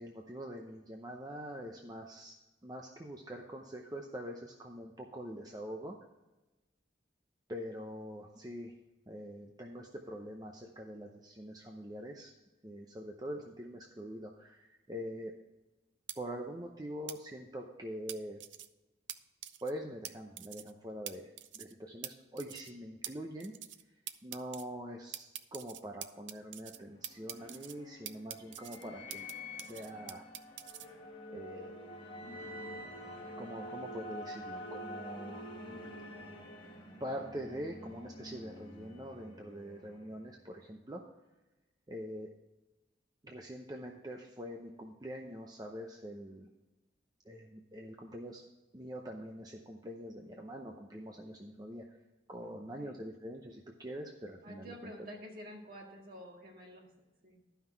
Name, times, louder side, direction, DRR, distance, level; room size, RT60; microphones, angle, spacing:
voice 1, 0.0-2.4 2.6-6.0 7.5-8.7 9.1-12.3 12.6-15.3 16.2-18.4 19.6-23.5 24.2-29.3 29.6-30.2 31.3-31.7 33.4-35.5 37.0-41.0 41.9-42.3 43.2-46.5 47.2-48.4 48.7-52.0 52.3-55.1, equal, 20° right, 1 dB, 0.6 m, -44 dB
sound 1, 16.1-16.2 17.1-17.2 18.1-18.7 19.1-19.2 19.4-19.7 20.0-20.1 20.4-20.7 21.1-21.2 21.4-21.7 22.0-22.1 22.4-22.7 23.0-23.1 23.4-23.8 24.1-24.6 25.1-26.8 27.0-27.7 28.1-29.3 29.6-30.9, right 12 dB, 85° right, 0.5 m, -44 dB
sound 2, 26.7-40.4, left 1 dB, 30° left, 1.4 m, -47 dB
voice 2, 52.4-53.0 54.4-56.9 57.2-57.4, equal, 50° right, 0 dB, 2.0 m, -49 dB
11.5 x 5.7 x 4.5 m, 1.1 s
head